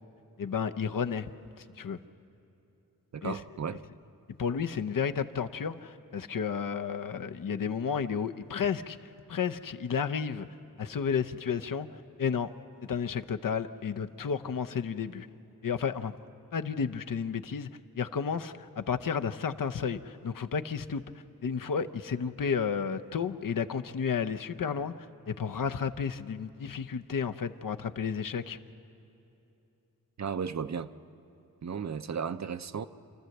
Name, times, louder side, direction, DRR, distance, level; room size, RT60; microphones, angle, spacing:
voice 1, 0.4-1.3 1.6-2.0 3.2-3.4 4.3-10.5 10.8-12.5 12.9-15.3 15.6-16.1 16.5-21.0 21.4-28.6, left 6 dB, 65° left, 0.7 m, -32 dB
voice 2, 3.1-3.8 30.2-30.9 31.6-32.9, right 6 dB, 50° right, 0.6 m, -34 dB
28.0 x 13.5 x 7.8 m
wide cardioid pair, 80°, 36 cm